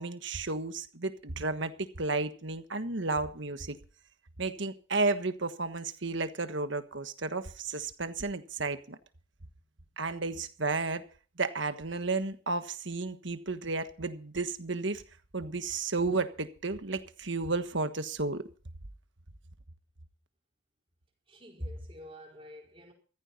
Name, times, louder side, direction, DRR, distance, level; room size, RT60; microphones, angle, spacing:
voice 1, 0.0-3.8 4.4-9.0 10.0-11.0 11.4-15.0 15.3-18.4, right 3 dB, 60° right, 1.4 m, -32 dB
voice 2, 21.3-22.9, equal, 25° right, 4.8 m, -44 dB
15.0 x 14.5 x 4.3 m
head